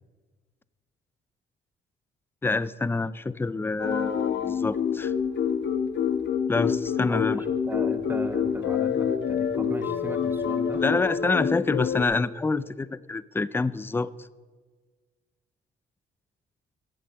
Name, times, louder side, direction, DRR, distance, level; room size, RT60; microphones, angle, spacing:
voice 1, 2.4-5.1 6.5-7.4 10.8-14.1, left 3 dB, 10° left, 19 dB, 0.4 m, -27 dB
sound 1, 3.8-12.0, left 7 dB, 65° left, 1.2 m, -27 dB
voice 2, 7.1-10.8, right 1 dB, 10° right, 9 dB, 1.3 m, -37 dB
12.0 x 8.4 x 7.6 m, 1.4 s
cardioid pair, 90°, 20 cm